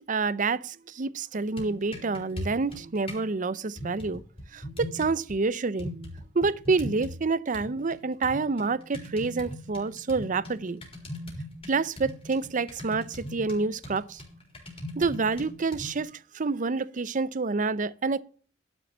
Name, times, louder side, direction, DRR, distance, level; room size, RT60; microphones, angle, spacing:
voice 1, 0.0-4.2 4.5-6.1 6.3-10.8 11.7-14.2 15.0-18.2, right 4 dB, 45° right, 0.6 m, -28 dB
sound 1, 1.3-3.3 3.8-5.3 5.8-7.2 7.5-16.0, left 1 dB, 30° left, 4.1 m, -40 dB
12.0 x 6.9 x 5.6 m
head